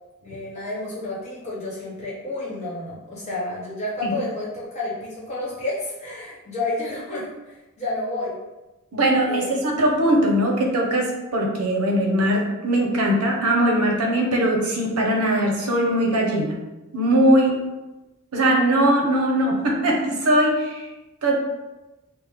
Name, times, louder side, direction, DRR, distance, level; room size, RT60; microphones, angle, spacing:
voice 1, 0.2-8.3 9.3-9.8, left 2 dB, 30° left, -8 dB, 1.0 m, -30 dB
voice 2, 8.9-16.6 16.9-17.6 18.3-20.8 21.2-21.4, right 1 dB, 80° right, 0 dB, 0.6 m, -20 dB
3.1 x 2.0 x 3.4 m, 1.1 s
head